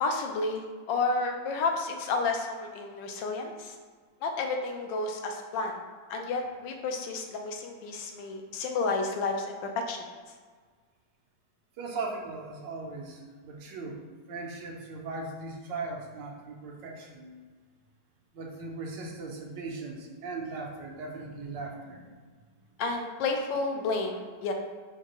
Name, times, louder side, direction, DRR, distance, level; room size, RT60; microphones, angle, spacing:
voice 1, 0.0-3.7 4.2-5.8 6.1-9.6 9.9-10.0 22.8-24.5, left 3 dB, 85° left, 3 dB, 1.3 m, -31 dB
voice 2, 11.8-14.0 14.3-17.3 18.3-22.2, right 3 dB, 80° right, 0 dB, 1.4 m, -38 dB
4.5 x 3.3 x 2.9 m, 1.6 s
omnidirectional pair, 1.9 m